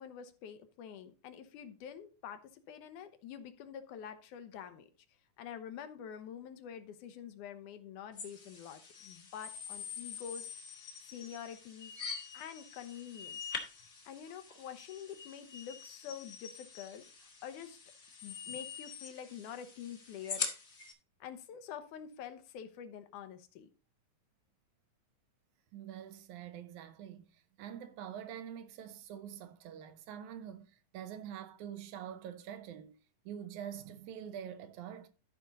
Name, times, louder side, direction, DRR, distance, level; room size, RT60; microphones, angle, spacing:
voice 1, 0.0-4.9 5.4-10.5 11.1-11.9 12.3-13.4 14.1-17.8 18.2-20.5 21.2-23.7, left 8 dB, 80° left, 2.4 m, -47 dB
sound 1, 8.2-20.9, left 5 dB, 40° left, 1.0 m, -45 dB
voice 2, 25.7-35.1, right 9 dB, 75° right, 2.1 m, -46 dB
13.5 x 5.1 x 4.0 m
omnidirectional pair, 3.5 m